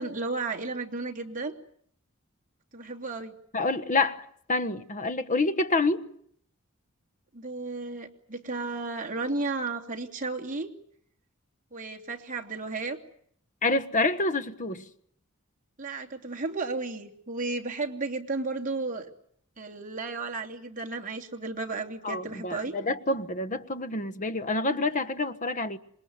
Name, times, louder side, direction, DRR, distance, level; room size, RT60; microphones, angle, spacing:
voice 1, 0.0-1.5 2.7-3.3 7.3-10.7 11.7-13.0 15.8-19.1 19.6-22.7, right 3 dB, 40° right, 2.9 m, -33 dB
voice 2, 3.5-6.1 13.6-14.9 22.0-25.8, left 2 dB, 35° left, 1.4 m, -27 dB
27.0 x 21.5 x 9.6 m
head